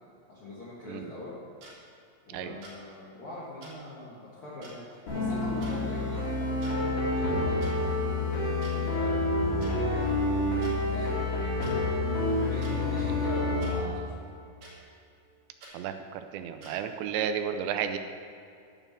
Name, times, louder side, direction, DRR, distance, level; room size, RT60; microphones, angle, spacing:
voice 1, 0.3-1.3 2.3-7.9 8.7-10.5 10.9-11.2 12.4-14.3, left 2 dB, 65° left, -8 dB, 1.4 m, -42 dB
sound 1, 1.6-1.7 2.6-2.8 3.6-3.7 4.6-4.7 5.6-5.8 6.5-6.7 7.6-7.7 8.6-8.7 9.6-9.7 10.6-10.7 11.6-11.7 12.6-12.7 13.6-13.7 14.6-14.7 15.6-15.7 16.6-16.7, right 2 dB, 55° right, 3.6 m, -48 dB
sound 2, 5.1-13.8, left 2 dB, 50° left, 3.7 m, -28 dB
voice 2, 15.7-18.0, right 8 dB, 85° right, 8 dB, 2.8 m, -32 dB
11.0 x 5.6 x 7.2 m, 2.5 s
omnidirectional pair, 5.0 m